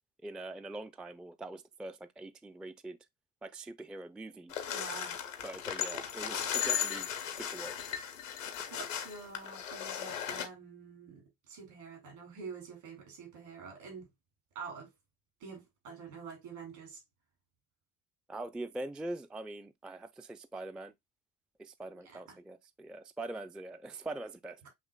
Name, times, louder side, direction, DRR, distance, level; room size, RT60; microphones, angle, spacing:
voice 1, 0.2-3.0 3.4-4.5 5.4-7.1 7.4-7.9 18.3-20.9 21.6-24.6, right 2 dB, ahead, 0.3 m, -43 dB
sound 1, 4.5-10.5, left 9 dB, 90° left, 0.8 m, -36 dB
voice 2, 4.7-5.2 8.7-11.2 11.5-14.1 14.5-14.9 15.4-17.0 22.0-22.3, right 5 dB, 70° right, 3.1 m, -47 dB
7.3 x 3.0 x 2.3 m
figure-of-eight pair, 55°, 38 cm